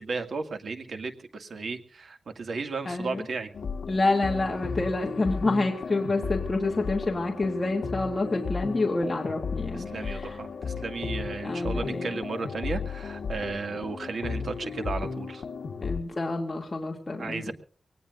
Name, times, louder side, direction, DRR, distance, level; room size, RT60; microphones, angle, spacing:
voice 1, 0.0-3.5 9.7-15.4 17.2-17.5, right 4 dB, 60° right, 7 dB, 2.1 m, -34 dB
voice 2, 2.9-3.2 3.9-9.9 10.1-10.2 11.4-12.1 15.8-17.4, left 2 dB, 25° left, 0 dB, 2.4 m, -28 dB
sound 1, 3.5-16.0, left 5 dB, 65° left, 1.4 m, -34 dB
24.0 x 19.0 x 2.5 m, 0.42 s
wide cardioid pair, 150°, 0 cm